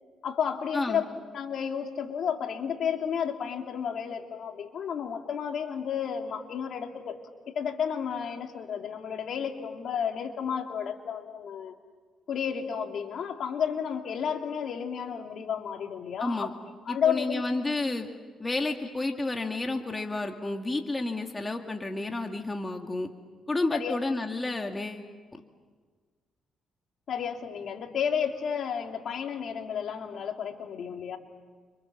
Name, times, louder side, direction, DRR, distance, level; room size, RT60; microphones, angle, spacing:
voice 1, 0.2-1.0 1.3-7.2 7.5-11.7 12.3-16.5 16.9-17.5 23.7-24.0 27.1-31.2, left 7 dB, 65° left, 3 dB, 3.0 m, -32 dB
voice 2, 16.2-16.5 16.9-18.1 18.4-23.1 23.5-25.0, left 2 dB, 20° left, 3 dB, 2.2 m, -31 dB
29.5 x 26.0 x 7.3 m, 1.5 s
cardioid pair, 90°, 0 cm